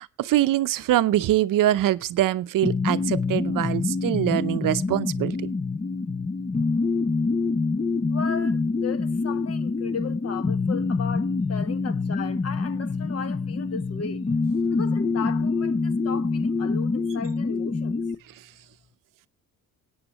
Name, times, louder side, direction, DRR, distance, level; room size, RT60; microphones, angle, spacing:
voice 1, 0.0-5.4, right 13 dB, 70° right, 0.7 m, -23 dB
sound 1, 2.6-18.1, left 4 dB, 20° left, 0.5 m, -26 dB
voice 2, 8.1-14.3 14.7-18.0, left 6 dB, 45° left, 1.1 m, -36 dB
20.5 x 8.9 x 2.9 m
cardioid pair, 95°, 35 cm